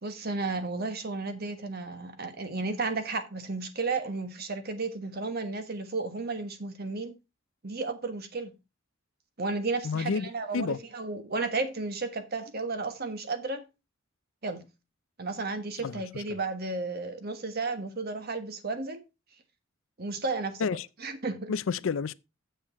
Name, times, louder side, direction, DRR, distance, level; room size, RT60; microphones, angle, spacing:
voice 1, 0.0-7.1 7.6-8.5 9.4-13.6 14.4-14.7 15.2-19.0 20.0-20.7 21.0-21.5, right 3 dB, 50° right, 1.3 m, -33 dB
voice 2, 9.8-10.8 15.8-16.4 20.6-20.9 21.5-22.1, left 5 dB, 75° left, 0.4 m, -31 dB
7.7 x 6.4 x 4.6 m
head